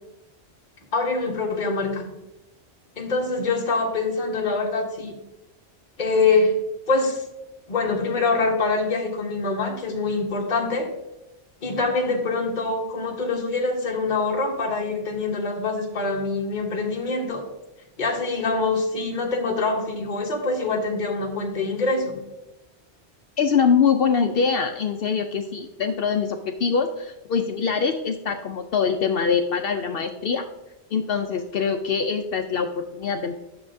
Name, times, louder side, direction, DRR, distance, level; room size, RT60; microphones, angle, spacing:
voice 1, 0.9-2.1 3.0-5.1 6.0-6.5 6.9-7.2 7.7-10.9 11.6-17.4 18.0-22.2, left 3 dB, 45° left, -1 dB, 1.2 m, -24 dB
voice 2, 23.4-30.4 30.9-33.4, left 6 dB, 65° left, 5 dB, 0.7 m, -23 dB
10.5 x 6.9 x 2.6 m, 0.95 s
omnidirectional pair, 1.1 m